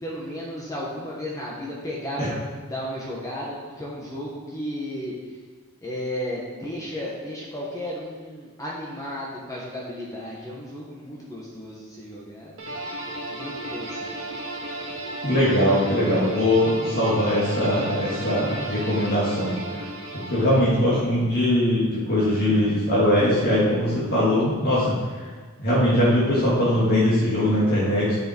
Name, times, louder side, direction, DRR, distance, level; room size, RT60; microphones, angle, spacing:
voice 1, 0.0-5.1 5.8-12.6 13.3-14.3, equal, 15° left, -5 dB, 1.2 m, -34 dB
sound 1, 12.6-20.9, right 1 dB, 70° right, 2.0 m, -34 dB
voice 2, 15.2-19.5 20.1-24.9 25.6-28.2, left 1 dB, 50° left, -7 dB, 2.0 m, -21 dB
8.4 x 6.6 x 4.4 m, 1.5 s
head